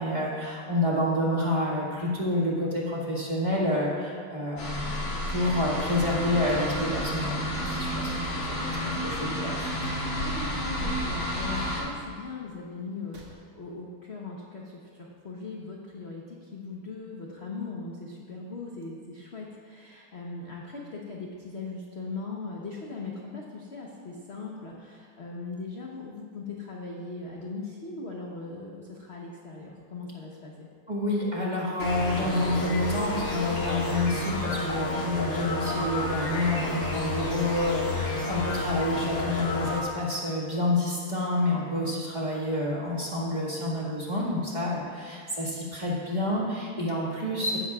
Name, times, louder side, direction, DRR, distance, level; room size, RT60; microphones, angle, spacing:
voice 1, 0.0-7.4 7.6-10.0 30.9-47.6, left 1 dB, 20° right, -5 dB, 1.8 m, -28 dB
sound 1, 4.6-11.8, equal, 80° left, 3.4 m, -31 dB
sound 2, 6.5-6.7 8.0-8.2 9.8-10.0 11.5-11.7 13.1-13.3, equal, 80° right, 2.6 m, -46 dB
voice 2, 8.8-9.4 10.1-30.7, left 3 dB, 45° left, -2 dB, 0.9 m, -39 dB
sound 3, 31.8-39.8, left 2 dB, 60° left, 2.2 m, -30 dB
15.0 x 11.5 x 2.4 m, 2.1 s
omnidirectional pair, 2.2 m